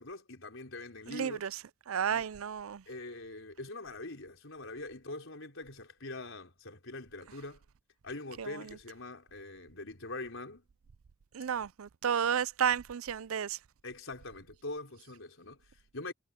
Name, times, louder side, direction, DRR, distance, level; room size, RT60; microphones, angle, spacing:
voice 1, 0.0-1.5 2.0-2.3 2.9-7.6 8.0-10.6 11.6-11.7 13.8-16.1, left 2 dB, 65° left, 5.4 m, -43 dB
voice 2, 1.1-1.5 1.9-2.8 8.4-8.6 11.3-13.6, right 8 dB, 80° right, 0.5 m, -32 dB
head